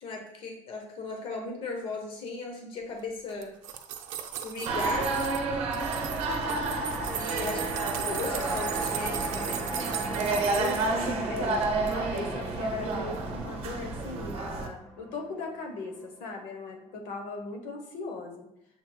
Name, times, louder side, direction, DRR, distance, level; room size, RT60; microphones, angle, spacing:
voice 1, 0.0-3.5 4.4-5.1 7.1-9.6, left 3 dB, 45° left, 2 dB, 0.8 m, -37 dB
sound 1, 3.3-5.4 5.7-10.9 11.4-11.9 12.2-12.3, right 10 dB, 90° right, 0.5 m, -37 dB
sound 2, 4.7-14.7, right 3 dB, 50° right, 0.7 m, -31 dB
sound 3, 5.3-15.7 16.0-16.1, right 1 dB, 20° left, 1.1 m, -38 dB
voice 2, 10.5-18.5, left 3 dB, 85° left, 3 dB, 0.9 m, -38 dB
7.1 x 3.0 x 2.2 m, 0.83 s
cardioid pair, 170°, 13 cm